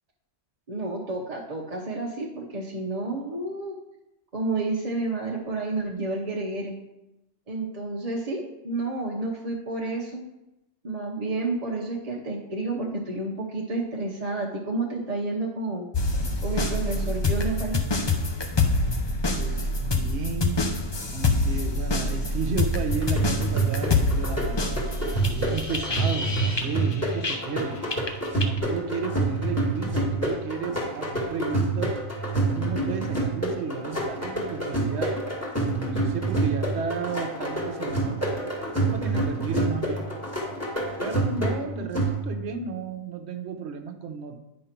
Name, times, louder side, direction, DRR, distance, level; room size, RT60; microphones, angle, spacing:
voice 1, 0.7-3.7 4.3-6.8 7.5-10.2 10.8-15.9 16.4-17.8 41.8-41.9, right 2 dB, 35° right, -2 dB, 0.9 m, -30 dB
sound 1, 15.9-27.6 27.9-28.6, left 2 dB, 30° left, 0.5 m, -26 dB
voice 2, 19.3-20.8 21.1-24.6 25.2-27.8 28.4-32.0 32.5-35.2 35.8-38.3 38.7-40.1 41.0-44.4, right 5 dB, 60° right, 6 dB, 1.1 m, -33 dB
sound 2, 22.9-42.5, right 2 dB, 10° left, 1.6 m, -27 dB
9.5 x 5.4 x 4.4 m, 0.93 s
omnidirectional pair, 1.3 m